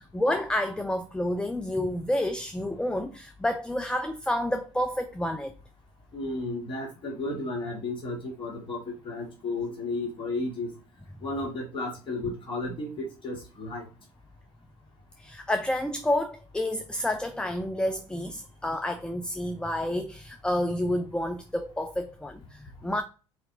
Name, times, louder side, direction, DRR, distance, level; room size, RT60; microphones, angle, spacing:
voice 1, 0.1-5.5 15.2-23.0, left 1 dB, 5° left, 0.4 m, -29 dB
voice 2, 6.1-10.7 11.2-13.8, left 2 dB, 30° left, 1.7 m, -33 dB
4.3 x 2.9 x 3.6 m
hypercardioid pair, 65°, 16 cm